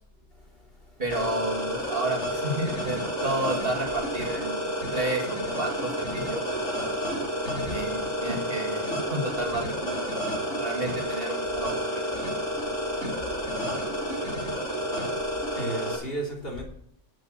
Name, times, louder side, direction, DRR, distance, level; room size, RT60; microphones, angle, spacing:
voice 1, 1.0-6.4 7.7-8.8 9.1-12.0, right 2 dB, 50° right, 2.7 m, -31 dB
sound 1, 1.1-15.9, equal, 70° left, 4.8 m, -30 dB
voice 2, 7.1-7.6 14.8-14.9 15.5-16.6, right 1 dB, 50° left, 3.7 m, -35 dB
10.5 x 8.7 x 6.5 m
omnidirectional pair, 1.3 m